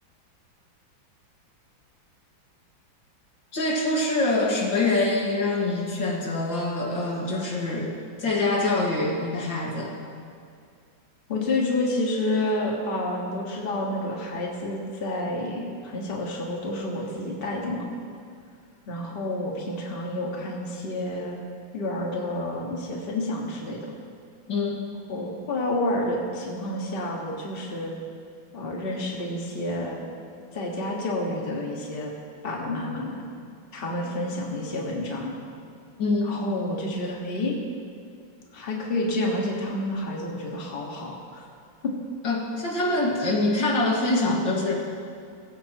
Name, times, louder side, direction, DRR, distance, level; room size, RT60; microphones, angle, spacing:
voice 1, 3.5-9.9 24.5-24.9 36.0-36.4 42.2-44.7, left 2 dB, 70° left, -2 dB, 2.6 m, -25 dB
voice 2, 11.3-17.9 18.9-21.4 21.7-23.9 25.1-27.9 28.5-30.1 30.5-32.1 32.4-33.2 33.7-35.4 36.2-37.5 38.5-41.5 41.8-41.9, left 1 dB, 30° left, -2 dB, 1.8 m, -29 dB
18.0 x 16.0 x 3.0 m, 2.3 s
omnidirectional pair, 2.2 m